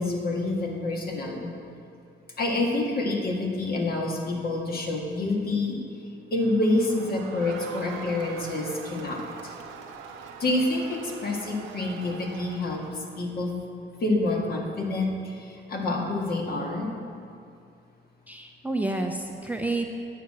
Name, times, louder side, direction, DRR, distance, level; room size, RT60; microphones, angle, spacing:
voice 1, 0.0-1.5 2.4-5.8 6.3-9.2 10.4-12.8 13.2-13.5 14.0-16.9, left 2 dB, 50° left, -1 dB, 1.9 m, -27 dB
Crowd, 6.4-13.2, right 6 dB, 90° right, 0.9 m, -43 dB
voice 2, 18.3-20.0, right 2 dB, 10° right, 2 dB, 0.7 m, -29 dB
9.2 x 5.8 x 7.6 m, 2.5 s
cardioid pair, 90°, 20 cm